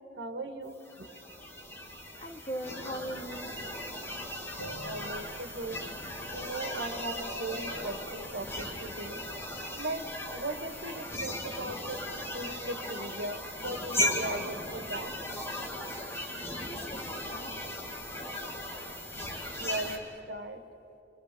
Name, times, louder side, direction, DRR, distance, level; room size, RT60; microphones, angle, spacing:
voice 1, 0.2-1.1 4.8-5.8 6.3-9.2 9.8-10.1 10.3-12.0 12.3-15.1 19.6-20.6, right 2 dB, 70° right, 6 dB, 1.9 m, -38 dB
sound 1, 0.8-20.0, left 1 dB, 15° left, 2.6 m, -37 dB
voice 2, 2.2-3.5 16.6-17.8, right 1 dB, 35° left, 1 dB, 2.5 m, -40 dB
sound 2, 4.6-16.0, equal, 70° left, 2.7 m, -50 dB
29.0 x 22.5 x 6.9 m, 2.8 s
head